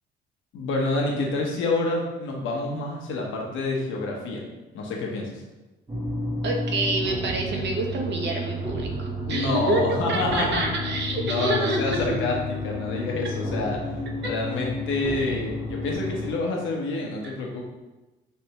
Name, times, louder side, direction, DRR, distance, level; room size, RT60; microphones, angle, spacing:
voice 1, 0.5-4.4 4.7-5.4 9.2-10.6 11.1-12.4 12.6-13.9 14.2-17.6, left 2 dB, 85° left, -1 dB, 1.0 m, -28 dB
sound 1, 5.9-16.3, left 1 dB, 25° right, 1.1 m, -31 dB
voice 2, 6.4-12.1 14.2-14.3 17.2-17.3, right 2 dB, 65° right, 1 dB, 0.8 m, -27 dB
4.5 x 3.3 x 2.9 m, 1.1 s
cardioid pair, 90°, 20 cm